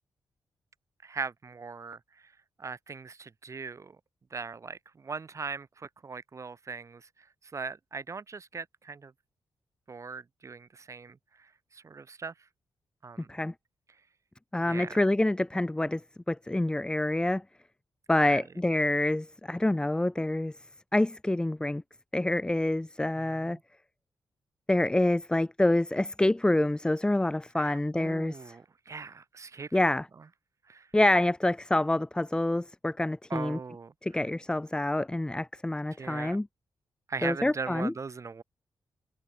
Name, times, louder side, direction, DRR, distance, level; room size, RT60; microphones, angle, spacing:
voice 1, 1.0-2.3 2.6-4.0 4.3-7.3 7.5-9.1 9.9-12.3 13.0-13.3 14.6-15.0 18.2-18.4 23.2-23.6 27.5-29.8 30.7-30.9 33.3-34.2 36.0-36.4 37.1-38.4, right 4 dB, 40° right, 3.6 m, -40 dB
voice 2, 14.5-16.0 16.3-17.4 18.1-20.5 20.9-21.8 22.1-23.6 24.7-28.6 29.7-30.1 30.9-33.6 34.0-36.5 37.2-37.9, left 1 dB, 10° left, 0.7 m, -27 dB
cardioid pair, 85°, 8 cm